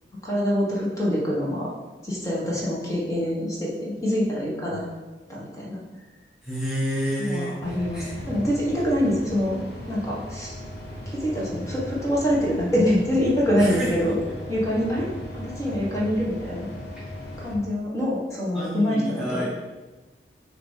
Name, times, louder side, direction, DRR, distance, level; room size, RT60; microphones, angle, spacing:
voice 1, 0.2-1.7 2.0-4.8 5.3-5.8 7.2-9.6 9.9-10.5 11.1-14.2 14.5-15.1 15.3-16.7 17.4-19.5, equal, 15° left, -5 dB, 1.3 m, -25 dB
voice 2, 6.4-8.1 13.6-13.9 18.5-19.5, equal, 5° right, -9 dB, 1.1 m, -29 dB
sound 1, 7.6-17.6, left 1 dB, 80° left, 1.3 m, -37 dB
6.7 x 3.0 x 5.5 m, 1.2 s
head